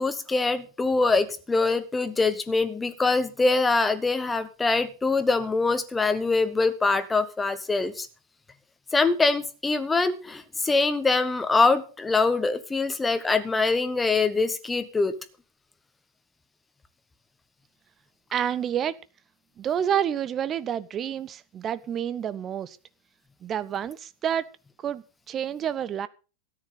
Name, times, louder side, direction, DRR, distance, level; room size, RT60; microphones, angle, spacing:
voice 1, 0.0-8.1 8.9-15.1, left 3 dB, 10° left, 1.2 m, -24 dB
voice 2, 18.3-19.0 19.6-22.8 23.4-24.5 24.8-26.1, right 9 dB, 25° right, 0.6 m, -29 dB
13.5 x 9.7 x 5.6 m
figure-of-eight pair, 90°, 0 cm